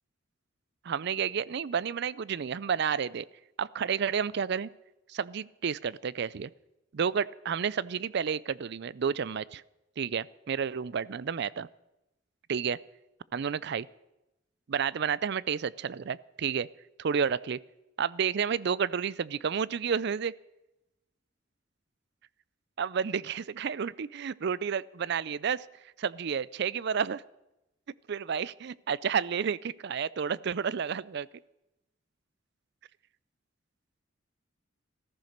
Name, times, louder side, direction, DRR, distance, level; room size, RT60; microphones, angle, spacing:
voice 1, 0.8-3.3 3.6-4.7 5.1-6.5 6.9-9.6 10.0-11.7 12.5-12.8 13.3-13.9 14.7-16.7 17.0-17.6 18.0-20.3 22.8-25.7 26.0-27.2 28.1-31.3, right 7 dB, 60° right, 21 dB, 0.4 m, -31 dB
14.5 x 14.0 x 6.6 m, 0.93 s
head